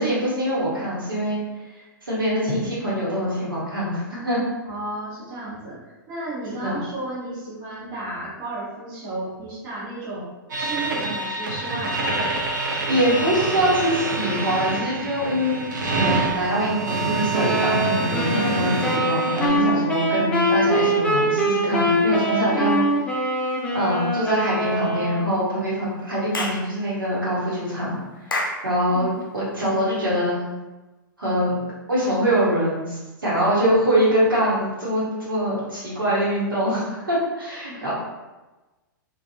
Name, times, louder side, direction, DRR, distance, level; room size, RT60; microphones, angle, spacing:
voice 1, 0.0-1.4 2.0-4.4 6.6-6.8 12.9-15.6 15.9-22.8 23.7-28.0 28.3-29.1 29.3-30.5 31.2-31.6 31.9-37.9, equal, 80° right, -8 dB, 1.1 m, -24 dB
voice 2, 4.6-12.1 28.9-29.2 37.7-37.9, right 2 dB, 35° right, -7 dB, 1.0 m, -33 dB
sound 1, 10.5-19.5, right 3 dB, 60° right, 0.6 m, -26 dB
sound 2, 17.3-25.3, right 1 dB, 10° left, 0.4 m, -23 dB
Clapping / Chirp tweet, 26.3-26.7 28.3-28.6, left 2 dB, 85° left, 0.4 m, -26 dB
2.6 x 2.4 x 2.6 m, 1.1 s
figure-of-eight pair, 105°, 11 cm